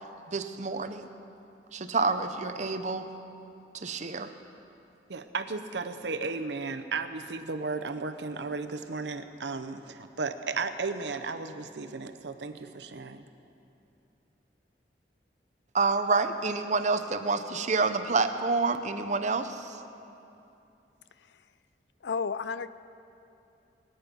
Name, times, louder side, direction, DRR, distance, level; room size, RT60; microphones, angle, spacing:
voice 1, 0.3-1.1 1.7-3.1 3.7-4.3 15.7-19.8, right 4 dB, 40° right, 8 dB, 0.7 m, -28 dB
voice 2, 5.1-13.3, right 4 dB, 75° right, 8 dB, 0.8 m, -34 dB
voice 3, 22.0-22.7, left 5 dB, 85° left, 15 dB, 0.5 m, -31 dB
22.5 x 8.9 x 5.3 m, 2.8 s
head